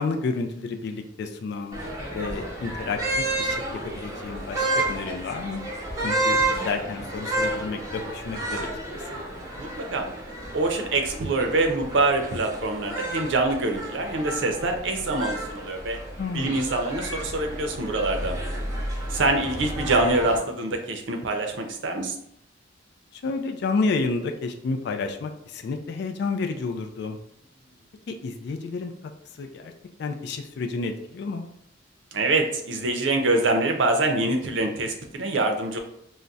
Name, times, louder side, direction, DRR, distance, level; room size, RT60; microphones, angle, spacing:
voice 1, 0.0-1.8 2.1-5.6 6.0-9.3 16.2-16.6 23.1-27.2 28.1-28.9 29.4-29.7 30.0-31.4, left 4 dB, 60° left, 4 dB, 0.3 m, -30 dB
sound 1, 1.7-20.4, right 2 dB, 20° right, 0.6 m, -31 dB
voice 2, 9.5-10.1 10.5-16.0 16.3-18.4 19.1-22.2 32.1-35.8, right 2 dB, 75° right, 4 dB, 0.5 m, -25 dB
2.3 x 2.1 x 3.8 m, 0.73 s
head